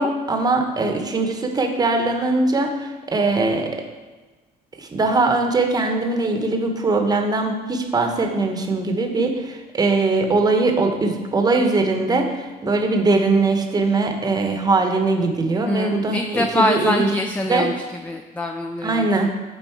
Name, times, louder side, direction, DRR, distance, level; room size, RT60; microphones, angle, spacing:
voice 1, 0.0-3.8 4.8-17.1 17.5-17.7 18.8-19.3, right 3 dB, 25° right, 4 dB, 0.9 m, -21 dB
voice 2, 15.6-19.3, left 1 dB, 10° left, 4 dB, 0.4 m, -24 dB
9.0 x 4.0 x 4.5 m, 1.2 s
cardioid pair, 110°, 17 cm